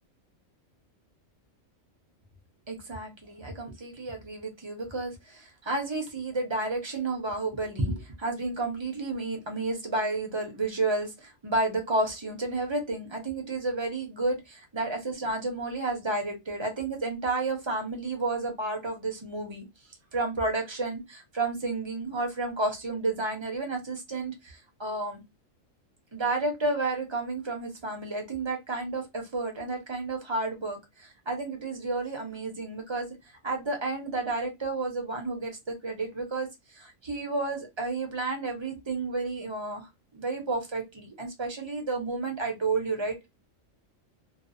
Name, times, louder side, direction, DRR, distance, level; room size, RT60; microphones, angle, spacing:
voice 1, 2.7-19.7 20.1-25.2 26.1-33.1 33.4-43.3, right 2 dB, 30° right, 3 dB, 0.5 m, -31 dB
2.5 x 2.0 x 2.4 m, 0.20 s
omnidirectional pair, 1.4 m